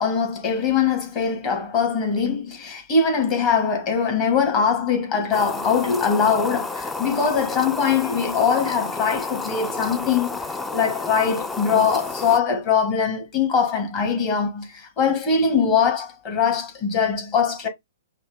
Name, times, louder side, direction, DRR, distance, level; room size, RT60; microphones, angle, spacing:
voice 1, 0.0-10.4 10.7-17.7, left 6 dB, 30° left, 1.6 m, -22 dB
sound 1, 5.3-12.4, left 3 dB, 10° left, 0.4 m, -31 dB
5.5 x 2.2 x 3.4 m
figure-of-eight pair, 120°, 0 cm